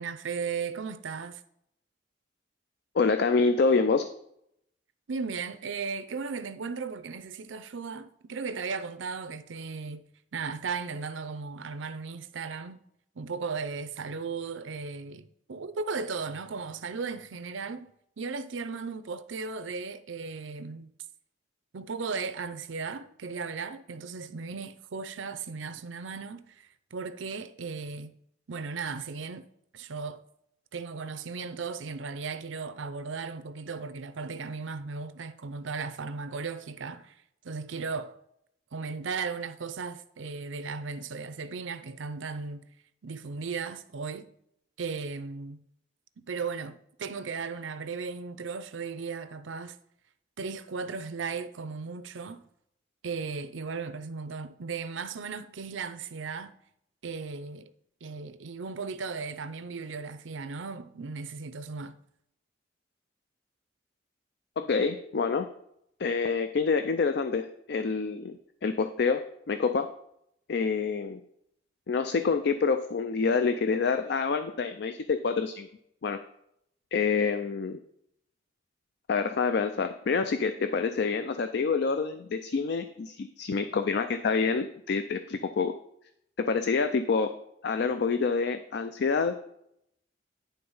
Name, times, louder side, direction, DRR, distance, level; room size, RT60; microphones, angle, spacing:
voice 1, 0.0-1.4 5.1-10.0 10.3-12.8 13.2-17.9 18.2-20.9 21.7-28.2 28.5-29.5 29.7-30.2 30.7-37.2 37.4-38.2 38.7-42.6 43.0-44.3 44.8-45.6 46.2-49.8 50.4-52.5 53.0-56.6 57.0-57.7 58.0-62.0, right 5 dB, 80° right, 0.6 m, -36 dB
voice 2, 2.9-4.1 64.6-65.5 66.0-68.4 68.6-69.2 69.5-69.9 70.5-71.2 71.9-75.7 76.0-76.2 76.9-77.8 79.1-85.7 86.4-87.3 87.6-89.3, left 4 dB, 60° left, 0.4 m, -27 dB
10.5 x 3.8 x 5.4 m
head